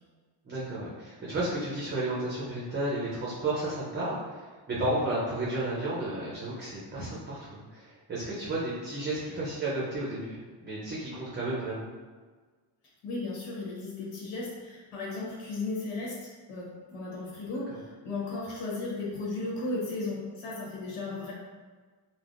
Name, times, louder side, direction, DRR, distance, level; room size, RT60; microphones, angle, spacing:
voice 1, 0.4-11.9 17.7-17.8, right 1 dB, 25° right, -7 dB, 0.5 m, -33 dB
voice 2, 13.0-21.3, left 2 dB, 85° left, -4 dB, 1.1 m, -35 dB
3.3 x 2.1 x 2.5 m, 1.4 s
cardioid pair, 120°, 48 cm